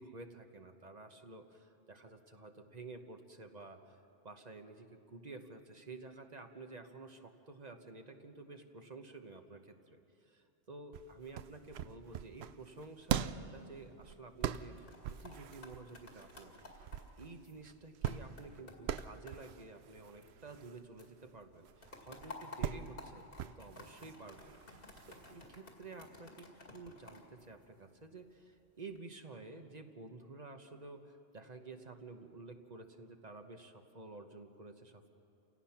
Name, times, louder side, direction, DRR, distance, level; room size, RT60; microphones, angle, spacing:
voice 1, 0.0-16.8 17.2-24.6 25.1-35.1, right 3 dB, 40° right, 6 dB, 1.3 m, -51 dB
sound 1, 10.9-25.6, right 9 dB, 80° right, 0.9 m, -43 dB
sound 2, 14.2-20.7 21.0-28.2 28.7-29.0, left 2 dB, 60° left, 2.4 m, -55 dB
29.5 x 17.5 x 5.9 m, 2.8 s
omnidirectional pair, 1.1 m